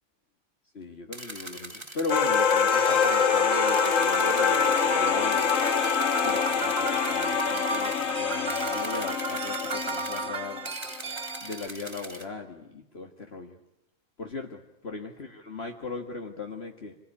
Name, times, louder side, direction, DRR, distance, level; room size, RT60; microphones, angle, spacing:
voice 1, 0.7-5.7 6.2-10.7 11.4-13.6 14.2-17.0, left 4 dB, 50° left, 3 dB, 2.0 m, -38 dB
sound 1, 1.1-3.2 3.7-4.9 5.3-8.1 8.5-10.3 10.7-12.3, right 2 dB, 20° right, 2.1 m, -42 dB
sound 2, 2.1-10.7, left 6 dB, 75° left, 1.7 m, -25 dB
sound 3, 2.7-11.7, right 4 dB, 55° right, 2.3 m, -34 dB
27.5 x 21.5 x 9.8 m, 0.91 s
omnidirectional pair, 1.3 m